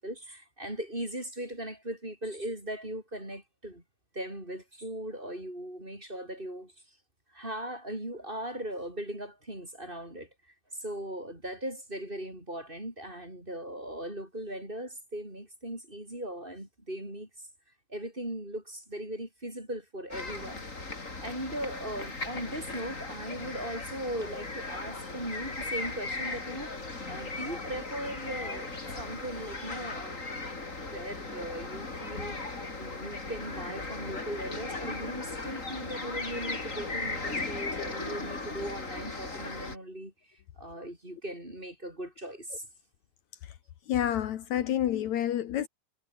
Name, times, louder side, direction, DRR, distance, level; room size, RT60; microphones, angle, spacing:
voice 1, 0.0-3.8 4.1-7.0 7.3-17.5 17.9-20.6 21.2-30.4 30.8-32.4 32.8-42.7, right 1 dB, 15° right, 8.2 m, -39 dB
sound 1, 20.1-39.8, left 3 dB, 25° left, 4.0 m, -37 dB
voice 2, 43.9-45.7, left 11 dB, 70° left, 2.5 m, -29 dB
omnidirectional pair, 3.4 m